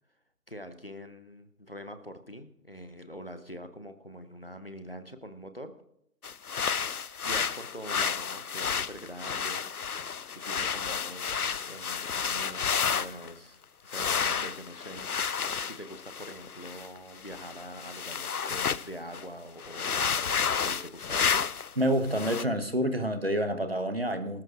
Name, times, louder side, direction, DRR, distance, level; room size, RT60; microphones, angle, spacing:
voice 1, 0.5-5.8 6.7-9.6 10.4-21.5, equal, 35° left, 0.8 m, -44 dB
sound 1, 6.2-13.3 13.9-18.9 19.1-19.2 19.6-21.7 22.1-22.4, left 6 dB, 65° left, 0.6 m, -31 dB
voice 2, 21.8-24.4, equal, 40° right, 1.1 m, -28 dB
25.0 x 13.5 x 2.5 m
figure-of-eight pair, 170°, 48 cm